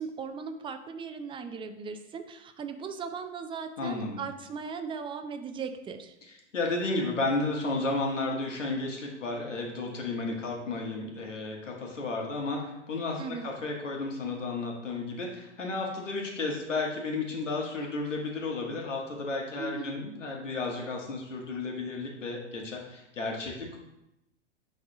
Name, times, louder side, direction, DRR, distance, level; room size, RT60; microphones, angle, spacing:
voice 1, 0.0-6.2 13.2-13.5 19.6-20.0, right 5 dB, 15° right, 7 dB, 0.5 m, -38 dB
voice 2, 3.8-4.2 6.5-23.8, left 3 dB, 85° left, 0 dB, 1.7 m, -33 dB
10.0 x 4.0 x 3.0 m, 0.87 s
hypercardioid pair, 105°, 36 cm